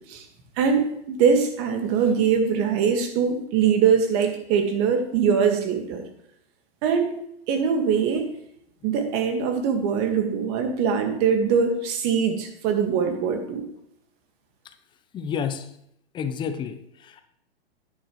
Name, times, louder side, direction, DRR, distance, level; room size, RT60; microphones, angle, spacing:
voice 1, 0.6-6.0 6.8-7.1 7.5-8.3 8.8-13.6, right 6 dB, 35° right, 5 dB, 1.8 m, -22 dB
voice 2, 15.1-15.7 16.1-17.2, left 7 dB, 15° left, 9 dB, 0.6 m, -30 dB
10.0 x 9.7 x 3.1 m, 0.75 s
hypercardioid pair, 120°, 31 cm